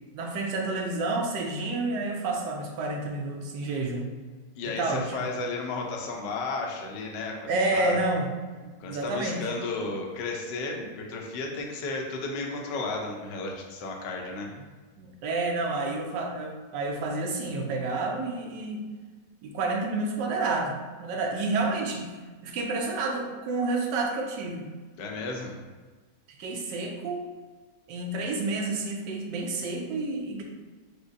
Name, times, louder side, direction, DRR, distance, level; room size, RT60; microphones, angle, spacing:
voice 1, 0.1-4.1 4.6-5.3 7.5-8.3 8.9-9.4 15.0-18.9 19.4-22.1 22.4-24.7 26.4-27.3 27.9-30.4, right 3 dB, 80° right, 2 dB, 1.2 m, -29 dB
voice 2, 4.6-8.0 8.8-14.5 25.0-25.6, left 3 dB, 80° left, 1 dB, 1.2 m, -33 dB
4.8 x 2.1 x 2.5 m, 1.4 s
omnidirectional pair, 1.9 m